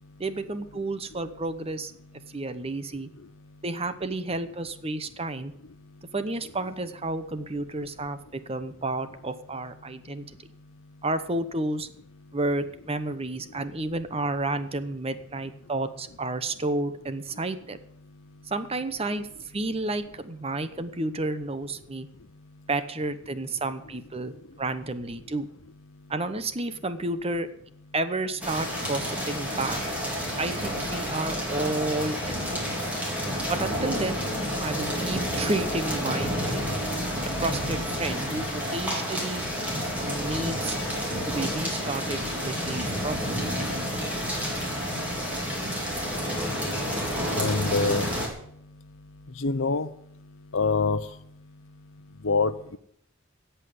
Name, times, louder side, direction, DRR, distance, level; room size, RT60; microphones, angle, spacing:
voice 1, 0.2-1.9 2.3-3.1 3.6-5.5 6.1-10.2 11.0-11.9 12.3-17.8 18.5-22.1 22.7-25.5 26.1-27.5 27.9-29.8 30.4-32.6 33.5-34.2 34.6-36.6 37.4-39.4 40.0-40.8 41.2-43.4 45.6-45.9, right 2 dB, 30° right, 11 dB, 0.9 m, -31 dB
sound 1, 28.4-48.3, equal, 10° right, 3.6 m, -30 dB
voice 2, 47.4-48.1 49.4-49.9 50.5-51.0 52.2-52.8, left 4 dB, 75° left, 13 dB, 0.8 m, -25 dB
16.5 x 5.7 x 9.6 m, 0.70 s
head